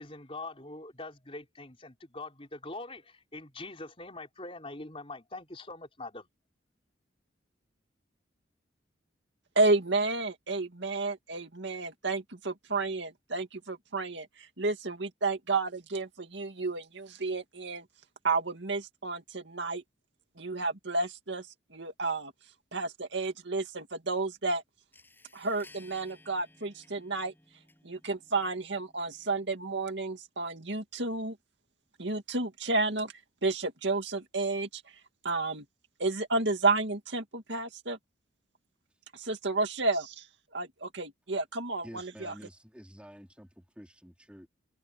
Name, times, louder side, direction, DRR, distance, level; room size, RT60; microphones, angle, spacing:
voice 1, 0.0-6.3, left 2 dB, 30° left, 4.3 m, -43 dB
voice 2, 9.6-17.8 18.2-19.8 20.4-22.3 22.7-24.6 25.3-27.3 27.8-31.4 32.0-33.1 33.4-34.8 35.2-35.7 36.0-38.0 39.1-40.3 40.5-42.3, right 3 dB, 70° right, 2.3 m, -31 dB
sound 1, 24.5-24.6 24.9-29.9, left 2 dB, 10° left, 7.7 m, -60 dB
voice 3, 41.8-44.5, equal, 5° right, 4.0 m, -50 dB
head